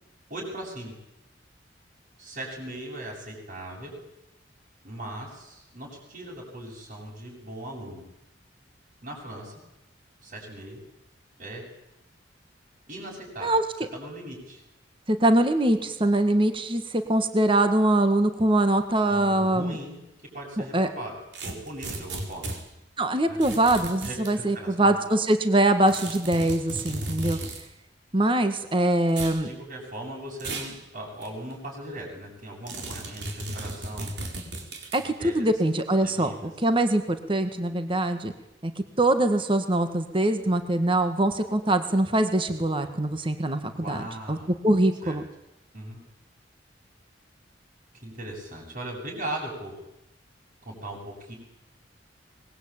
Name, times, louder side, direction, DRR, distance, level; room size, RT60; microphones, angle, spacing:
voice 1, 0.3-0.9 2.2-3.9 4.8-8.0 9.0-9.5 10.2-10.8 11.4-11.6 12.9-14.6 19.1-20.0 20.3-21.2 21.4-22.5 23.2-23.4 24.0-25.0 29.4-34.1 35.0-35.5 36.0-36.5 43.7-44.5 45.0-45.2 45.7-46.0 47.9-49.8 50.6-51.4, right 1 dB, 50° right, -6 dB, 7.8 m, -39 dB
voice 2, 15.1-19.7 20.7-20.9 23.0-27.4 28.1-29.5 34.9-38.3 38.6-38.7 39.0-44.4 44.6-45.2, right 1 dB, 30° right, 8 dB, 1.7 m, -23 dB
sound 1, 21.3-22.6 23.4-24.3 25.9-27.6 29.1-29.4 30.4-30.8 31.2-31.3 32.7-35.1, right 2 dB, 65° right, 4.9 m, -35 dB
24.0 x 21.0 x 8.9 m, 0.86 s
head